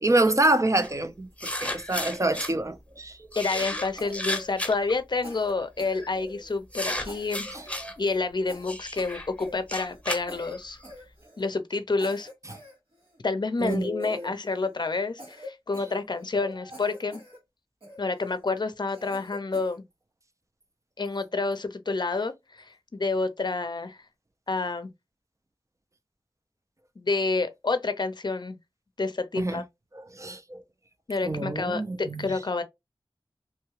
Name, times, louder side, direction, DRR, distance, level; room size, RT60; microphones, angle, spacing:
voice 1, 0.0-3.2 7.5-7.9 13.6-14.3 29.4-29.6 30.1-30.6 31.2-32.4, right 2 dB, 35° right, 0.5 m, -27 dB
sound 1, 0.8-0.9 1.4-2.5 3.3-4.9 5.8-6.1 6.7-7.9 8.6-10.9, left 1 dB, 15° left, 0.9 m, -33 dB
voice 2, 3.4-7.5 8.0-10.8 11.4-12.3 13.2-17.2 18.0-19.8 21.0-24.0 24.5-24.9 27.0-28.6 29.0-29.6 31.1-32.6, left 3 dB, 55° left, 0.5 m, -29 dB
Cough, 3.6-5.0 5.2-6.5 7.0-7.8 8.0-8.2 8.5-10.0 10.3-10.6 10.8-11.5 12.0-13.2 13.7-14.7 15.2-16.4 16.7-17.4 17.8-18.4 18.9-19.8, left 1 dB, 85° right, 1.6 m, -45 dB
3.0 x 2.3 x 3.0 m
wide cardioid pair, 55°, 9 cm